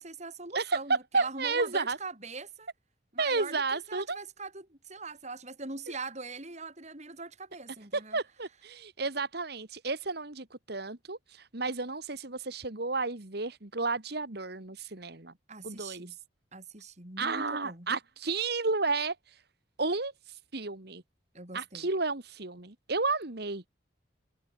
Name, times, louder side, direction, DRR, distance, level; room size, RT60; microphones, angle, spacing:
voice 1, 0.0-2.7 3.1-8.2 15.5-16.2 16.5-17.9 21.3-21.9, right 3 dB, 40° right, 5.7 m, -42 dB
voice 2, 0.5-2.0 3.2-4.2 7.9-15.3 15.6-16.2 17.2-19.4 19.8-21.0 21.5-23.7, right 3 dB, 60° right, 2.2 m, -32 dB
head